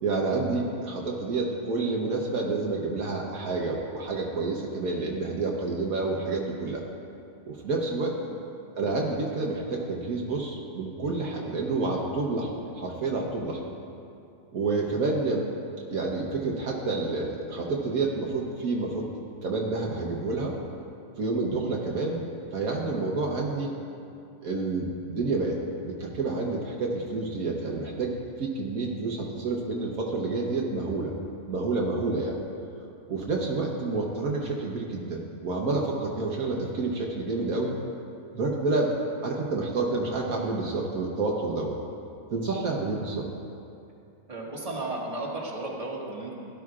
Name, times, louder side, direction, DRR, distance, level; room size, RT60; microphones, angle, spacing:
voice 1, 0.0-6.8 7.5-8.1 8.8-12.5 12.7-13.6 14.5-15.5 15.9-19.1 19.4-20.5 21.2-22.2 22.5-23.7 24.4-25.6 25.8-31.1 31.5-32.4 33.1-37.7 38.3-38.9 39.2-41.8 42.3-43.2, right 3 dB, 70° right, -1 dB, 1.4 m, -29 dB
voice 2, 44.3-46.4, right 2 dB, 25° right, -5 dB, 1.8 m, -34 dB
16.5 x 12.0 x 2.4 m, 2.6 s
omnidirectional pair, 1.6 m